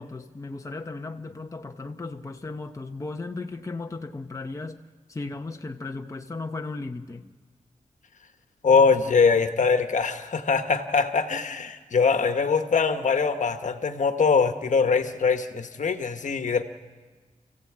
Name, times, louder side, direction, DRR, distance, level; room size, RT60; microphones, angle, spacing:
voice 1, 0.0-4.8 5.1-7.3, left 3 dB, 25° left, 5 dB, 0.8 m, -36 dB
voice 2, 8.6-16.6, left 5 dB, 65° left, 8 dB, 1.3 m, -22 dB
28.5 x 15.5 x 8.6 m, 1.4 s
wide cardioid pair, 130°, 14 cm